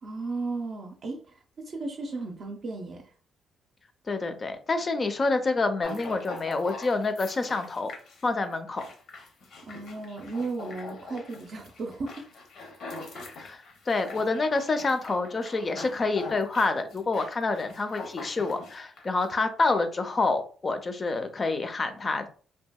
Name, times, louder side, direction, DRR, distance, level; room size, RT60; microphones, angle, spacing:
voice 1, 0.0-3.0 9.7-12.3 13.1-13.4, right 3 dB, 55° right, 2 dB, 0.5 m, -35 dB
voice 2, 4.1-7.9 8.2-8.9 13.3-13.6 13.9-22.3, left 3 dB, 35° left, 8 dB, 0.4 m, -27 dB
sound 1, 5.8-19.3, left 3 dB, 70° left, 0.7 m, -43 dB
2.7 x 2.6 x 2.2 m, 0.42 s
cardioid pair, 90°, 0 cm